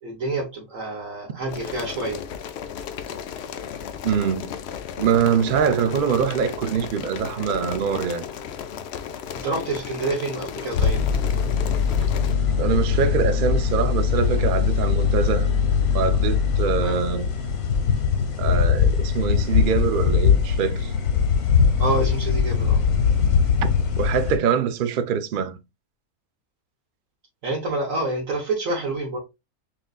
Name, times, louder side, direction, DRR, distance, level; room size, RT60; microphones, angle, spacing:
voice 1, 0.0-2.2 9.3-11.0 16.8-17.0 21.8-22.8 27.4-29.2, right 2 dB, 65° right, 1.4 m, -27 dB
sound 1, 1.5-12.4, left 8 dB, 70° left, 0.6 m, -35 dB
voice 2, 4.0-4.5 5.0-8.2 12.6-15.5 15.9-17.3 18.4-20.9 24.0-25.6, right 7 dB, 80° right, 0.4 m, -23 dB
sound 2, 10.7-24.4, left 6 dB, 85° left, 1.5 m, -21 dB
5.9 x 2.5 x 2.4 m
omnidirectional pair, 1.5 m